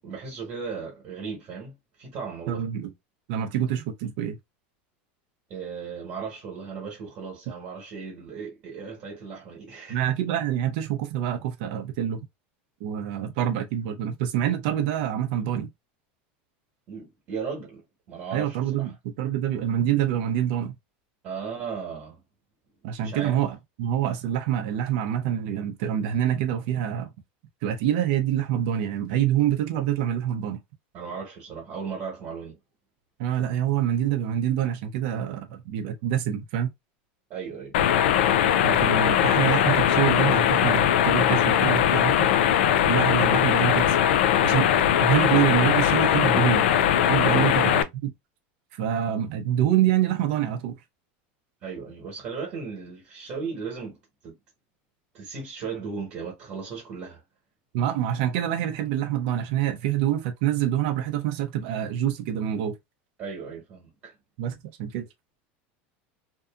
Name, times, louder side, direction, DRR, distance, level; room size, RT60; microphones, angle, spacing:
voice 1, 0.0-2.7 5.5-10.0 16.9-17.8 18.1-18.9 21.2-22.2 23.0-23.4 30.9-32.6 37.3-37.7 47.2-47.9 51.6-54.0 54.2-54.4 55.1-57.2 63.2-64.1, right 5 dB, 35° right, 1.2 m, -36 dB
voice 2, 2.5-2.9 3.3-4.4 9.9-12.2 12.8-15.7 18.3-20.7 22.8-27.1 27.6-30.6 33.2-36.7 38.6-42.3 42.9-44.0 44.4-44.7 45.0-46.7 47.0-47.7 48.0-48.1 48.7-50.8 57.7-62.7 64.4-65.0, right 10 dB, 55° right, 0.6 m, -26 dB
sound 1, 37.7-47.8, left 10 dB, 85° left, 0.4 m, -20 dB
2.7 x 2.5 x 2.3 m
supercardioid pair, 165°, 6 cm